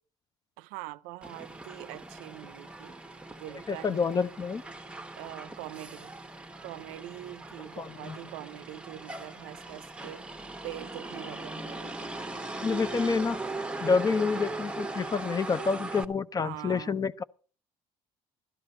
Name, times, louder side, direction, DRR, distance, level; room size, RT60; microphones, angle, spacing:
voice 1, 0.6-3.0 3.4-4.0 5.2-6.1 6.6-12.1 16.4-17.0, right 16 dB, 90° right, 0.5 m, -43 dB
Motor vehicle (road), 1.2-16.0, right 2 dB, 10° right, 0.9 m, -39 dB
voice 2, 3.7-4.6 7.8-8.2 12.6-13.4 13.8-17.2, left 5 dB, 25° left, 0.6 m, -28 dB
13.0 x 12.0 x 4.3 m
cardioid pair, 100°, 14 cm